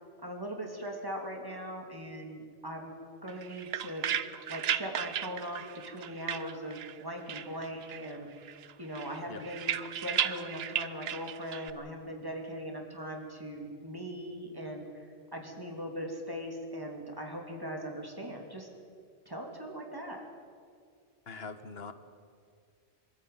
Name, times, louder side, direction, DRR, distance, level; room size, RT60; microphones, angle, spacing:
voice 1, 0.2-2.9 3.2-4.1 4.5-8.3 8.8-14.9 15.3-18.7 19.3-20.2, equal, 20° right, 1 dB, 2.9 m, -40 dB
sound 1, 3.3-7.0 7.3-8.2 8.4-11.7, right 9 dB, 80° right, 1.0 m, -35 dB
voice 2, 21.3-21.9, left 4 dB, 75° left, 10 dB, 1.3 m, -42 dB
23.5 x 13.5 x 9.5 m, 2.1 s
omnidirectional pair, 1.0 m